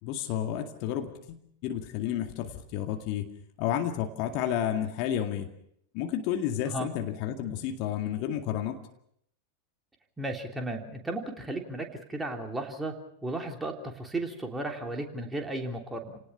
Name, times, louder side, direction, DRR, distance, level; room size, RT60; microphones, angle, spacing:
voice 1, 0.0-3.2 3.6-5.5 5.9-8.8, left 10 dB, 45° left, 4 dB, 2.2 m, -31 dB
voice 2, 10.2-12.9 13.2-16.2, right 2 dB, 10° right, 2 dB, 3.3 m, -34 dB
30.0 x 19.0 x 5.7 m, 0.71 s
figure-of-eight pair, 90°, 0 cm